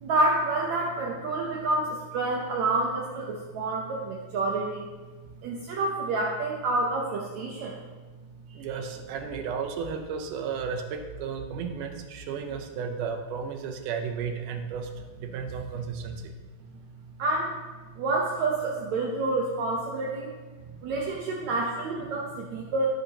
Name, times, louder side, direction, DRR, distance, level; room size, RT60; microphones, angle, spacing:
voice 1, 0.0-4.9 5.4-7.8 8.5-8.6 17.2-17.5 18.0-20.3 20.8-22.9, right 2 dB, 70° right, -1 dB, 2.0 m, -28 dB
voice 2, 8.6-14.9 15.2-16.3, right 6 dB, 90° right, 5 dB, 2.3 m, -33 dB
17.0 x 6.6 x 2.9 m, 1.4 s
omnidirectional pair, 3.6 m